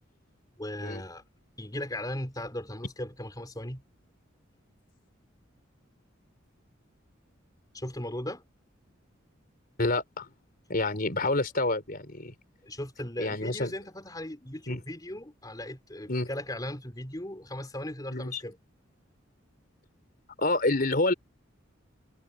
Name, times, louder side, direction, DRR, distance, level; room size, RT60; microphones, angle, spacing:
voice 1, 0.6-1.2 1.6-3.8 7.7-8.4 12.6-18.6, left 1 dB, 20° left, 4.1 m, -37 dB
voice 2, 9.8-10.3 10.7-12.3 13.2-13.7 14.7-14.8 16.1-16.3 18.1-18.4 20.4-21.1, left 2 dB, 45° left, 4.2 m, -28 dB
head